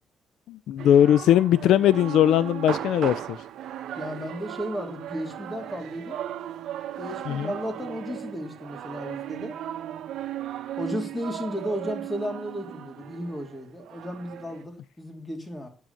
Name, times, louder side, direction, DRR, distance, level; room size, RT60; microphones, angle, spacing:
voice 1, 0.5-3.4 7.3-7.5, left 11 dB, 85° left, 0.4 m, -20 dB
sound 1, 0.8-14.6, right 11 dB, 75° right, 1.0 m, -37 dB
voice 2, 4.0-6.2 7.0-9.6 10.8-15.7, equal, 15° left, 3.2 m, -34 dB
8.9 x 6.3 x 8.3 m
cardioid pair, 90°, 0 cm